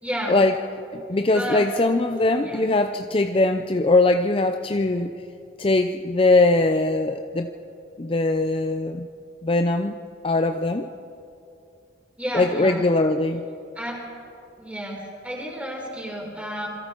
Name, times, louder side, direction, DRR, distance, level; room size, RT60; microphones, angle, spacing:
voice 1, 0.0-0.4 1.3-1.7 2.4-2.6 12.2-12.8 13.7-14.0 14.6-16.7, equal, 5° right, -1 dB, 4.5 m, -31 dB
voice 2, 0.9-5.1 5.6-7.5 8.0-9.1 9.4-10.0 10.2-10.9 12.3-13.4, left 2 dB, 30° left, 7 dB, 0.6 m, -21 dB
27.5 x 22.5 x 4.5 m, 2.7 s
head